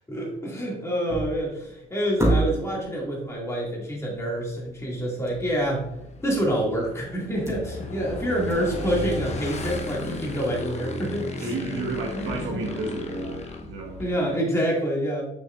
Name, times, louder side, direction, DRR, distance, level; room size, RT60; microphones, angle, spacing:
voice 1, 0.1-5.8 6.2-11.5 12.1-12.6 14.0-15.3, equal, 15° left, -4 dB, 2.2 m, -27 dB
sound 1, 1.1-1.5 2.2-2.9 5.3-5.5 5.8-5.9 6.4-6.7 7.1-8.1 8.5-8.6, right 2 dB, 15° right, 2.3 m, -27 dB
Motorcycle / Engine, 4.7-14.3, left 3 dB, 35° left, 1.0 m, -35 dB
voice 2, 11.4-14.0, right 3 dB, 85° right, 1 dB, 1.5 m, -32 dB
6.5 x 6.2 x 2.5 m, 0.87 s
cardioid pair, 90°, 20 cm